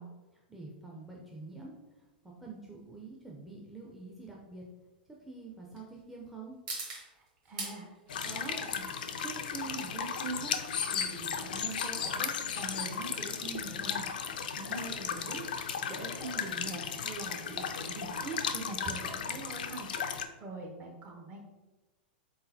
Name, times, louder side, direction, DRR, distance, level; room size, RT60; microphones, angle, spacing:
voice 1, 0.0-4.6 5.1-6.5, right 3 dB, ahead, -2 dB, 0.6 m, -47 dB
sound 1, 1.0-17.7, right 3 dB, 55° right, 1.2 m, -49 dB
voice 2, 7.1-7.9 8.2-8.8 9.2-10.5 10.9-14.1 14.6-15.4 15.9-21.4, right 3 dB, 30° right, 1 dB, 0.9 m, -43 dB
sound 2, 8.1-20.2, left 7 dB, 65° left, 0.3 m, -35 dB
3.9 x 3.8 x 2.7 m, 1.2 s
figure-of-eight pair, 95°, 5 cm